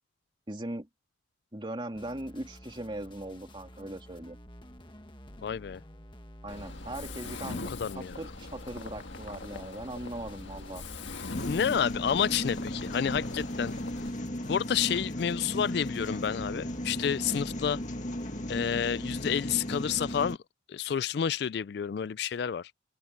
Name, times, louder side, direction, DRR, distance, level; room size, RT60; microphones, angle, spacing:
voice 1, 0.5-0.9 1.5-4.4 6.4-10.8, right 1 dB, 25° right, 3.0 m, -39 dB
sound 1, 1.9-20.3, left 1 dB, 25° left, 1.6 m, -50 dB
voice 2, 5.4-5.8 7.7-8.2 11.5-13.7 14.4-17.8 18.5-20.4 20.7-22.7, left 8 dB, 55° left, 0.3 m, -30 dB
Mechanisms, 6.5-14.1, left 3 dB, 75° left, 1.6 m, -42 dB
sound 2, 11.3-20.4, left 1 dB, 40° left, 2.0 m, -36 dB
head